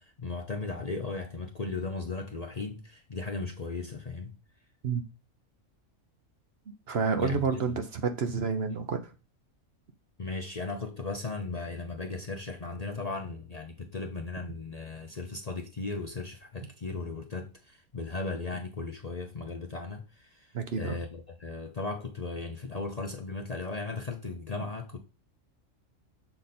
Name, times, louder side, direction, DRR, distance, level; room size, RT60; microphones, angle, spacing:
voice 1, 0.0-4.3 7.2-7.6 10.2-25.0, left 3 dB, 40° left, 0.6 m, -36 dB
voice 2, 6.9-9.0 20.5-21.0, right 5 dB, 55° right, 1.0 m, -29 dB
6.8 x 3.9 x 4.1 m
omnidirectional pair, 1.3 m